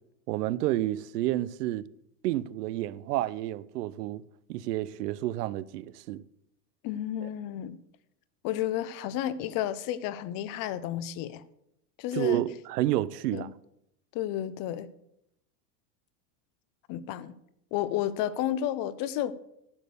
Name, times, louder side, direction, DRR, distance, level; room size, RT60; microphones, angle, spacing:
voice 1, 0.3-1.8 2.2-4.2 4.5-6.2 7.2-7.3 12.1-13.5, right 14 dB, 90° right, 0.6 m, -30 dB
voice 2, 6.8-7.8 8.4-11.4 12.0-12.4 13.3-13.5 14.1-14.9 16.9-17.4 17.7-19.3, left 11 dB, 45° left, 0.8 m, -31 dB
10.5 x 6.6 x 6.7 m
supercardioid pair, 130°, 46 cm